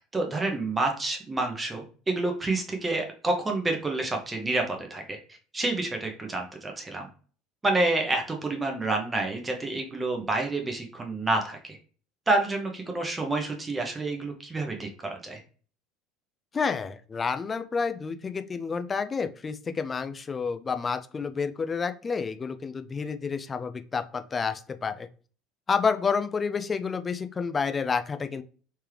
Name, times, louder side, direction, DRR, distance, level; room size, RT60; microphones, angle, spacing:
voice 1, 0.1-5.2 5.5-7.1 7.6-11.8 12.3-15.4, right 2 dB, 20° right, 2 dB, 0.8 m, -28 dB
voice 2, 16.5-25.1 25.7-28.4, left 5 dB, 25° left, 9 dB, 0.4 m, -29 dB
3.3 x 3.3 x 3.1 m, 0.41 s
figure-of-eight pair, 70°, 0 cm